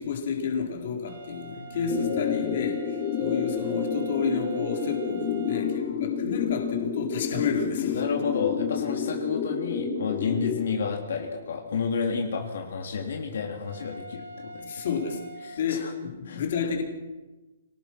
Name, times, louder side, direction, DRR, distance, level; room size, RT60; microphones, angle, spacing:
voice 1, 0.0-8.0 14.6-15.3 15.6-16.8, left 6 dB, 45° left, 3 dB, 4.3 m, -30 dB
sound 1, 1.0-5.7 13.6-15.6, right 4 dB, 80° right, 5.0 m, -45 dB
voice 2, 1.5-1.9 5.5-6.2 7.9-15.0 15.4-15.9 16.3-16.4, left 5 dB, 65° left, 1 dB, 3.6 m, -31 dB
sound 2, 1.9-10.6, left 7 dB, 30° left, 4.0 m, -29 dB
25.5 x 19.0 x 6.1 m, 1.1 s
hypercardioid pair, 175°, 0 cm